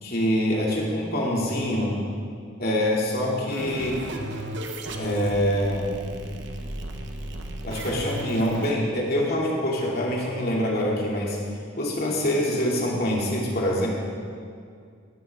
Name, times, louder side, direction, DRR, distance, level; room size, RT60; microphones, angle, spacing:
voice 1, 0.0-2.0 2.6-4.0 5.0-5.9 7.6-11.4 11.8-13.9, equal, 45° left, -3 dB, 2.6 m, -25 dB
sound 1, 3.5-8.7, right 1 dB, 55° right, 1.1 m, -34 dB
17.5 x 11.5 x 3.6 m, 2.3 s
head